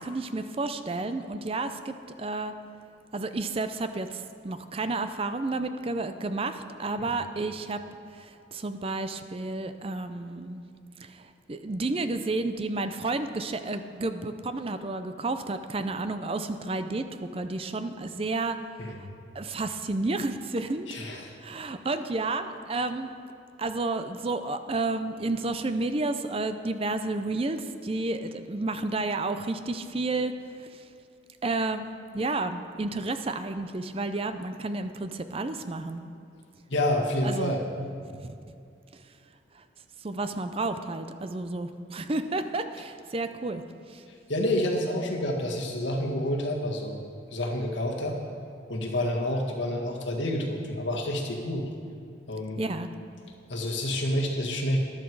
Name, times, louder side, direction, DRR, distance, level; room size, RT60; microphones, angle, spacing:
voice 1, 0.0-2.5 3.1-7.8 8.1-10.6 11.0-18.6 19.0-19.1 19.3-23.1 23.6-30.9 31.4-31.9 32.1-36.1 37.2-37.5 38.1-38.3 38.9-39.0 39.5-39.6 40.0-44.0 52.6-52.9, right 2 dB, 30° right, 9 dB, 0.5 m, -31 dB
voice 2, 20.9-21.4 36.7-37.6 44.3-47.0 47.3-48.2 48.7-51.6 52.3-52.6 53.5-54.8, left 1 dB, 75° left, 0 dB, 1.7 m, -28 dB
13.0 x 11.5 x 4.7 m, 2.5 s
head